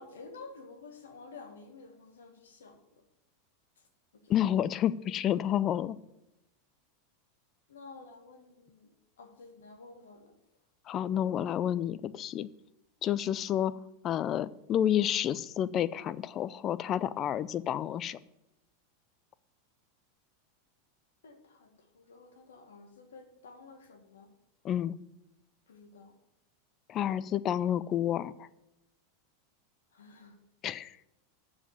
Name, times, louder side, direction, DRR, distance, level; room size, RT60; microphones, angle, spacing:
voice 1, 0.0-2.8 4.2-4.3 7.7-8.9 9.2-10.3 21.2-21.7 21.9-24.3 25.7-26.2 29.9-30.3, left 3 dB, 80° left, 5 dB, 1.7 m, -51 dB
voice 2, 4.3-6.0 10.9-12.5 13.0-13.7 14.0-18.2 24.6-25.0 26.9-28.5 30.6-30.9, left 10 dB, 40° left, 17 dB, 0.5 m, -30 dB
7.3 x 7.3 x 7.0 m, 0.89 s
hypercardioid pair, 95°, 0 cm